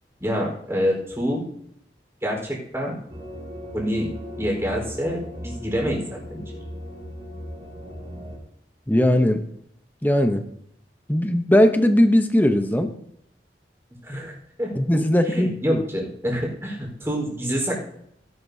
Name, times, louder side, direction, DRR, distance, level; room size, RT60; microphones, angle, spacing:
voice 1, 0.2-1.4 2.2-3.0 3.7-4.1 4.4-6.4 14.0-14.8 15.3-17.8, equal, 15° right, -1 dB, 4.4 m, -27 dB
sound 1, 3.1-8.4, equal, 35° right, 2.5 m, -37 dB
voice 2, 8.9-9.4 10.0-10.4 11.1-12.9 14.8-15.8, left 1 dB, 10° left, 7 dB, 0.8 m, -19 dB
17.5 x 11.0 x 2.8 m, 0.73 s
head